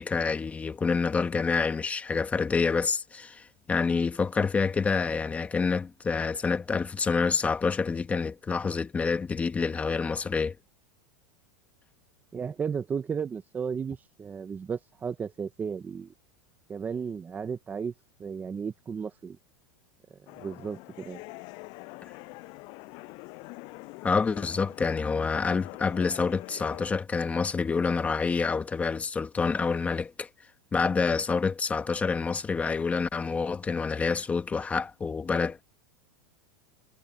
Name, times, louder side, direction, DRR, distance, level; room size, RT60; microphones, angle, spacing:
voice 1, 0.0-10.5 24.0-30.3 30.7-35.6, left 5 dB, 15° left, 1.3 m, -27 dB
voice 2, 12.3-16.1 16.7-17.9 18.2-19.4 20.4-21.2, right 6 dB, 15° right, 1.0 m, -34 dB
sound 1, 20.3-26.9, left 29 dB, 50° left, 7.0 m, -45 dB
supercardioid pair, 150°, 10 cm